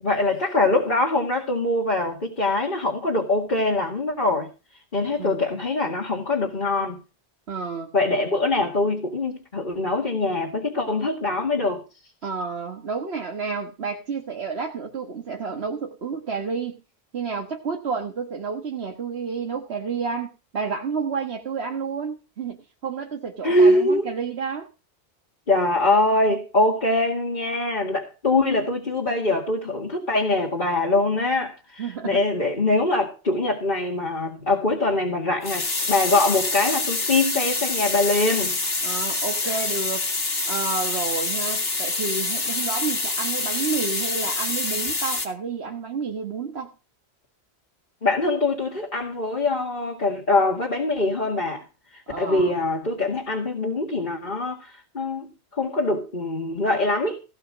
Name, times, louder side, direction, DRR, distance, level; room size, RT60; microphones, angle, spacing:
voice 1, 0.0-4.5 4.9-7.0 7.9-11.8 23.4-24.1 25.5-38.5 39.4-39.5 48.0-51.6 51.9-55.3 55.5-57.2, left 2 dB, 50° left, 2.3 m, -23 dB
voice 2, 7.5-7.9 12.2-16.8 17.1-22.6 22.8-24.7 31.8-32.2 38.8-40.1 40.5-46.7 52.1-52.5, right 5 dB, 70° right, 1.6 m, -30 dB
sound 1, 35.4-45.3, left 3 dB, 65° left, 2.3 m, -26 dB
17.0 x 5.8 x 6.3 m
omnidirectional pair, 1.1 m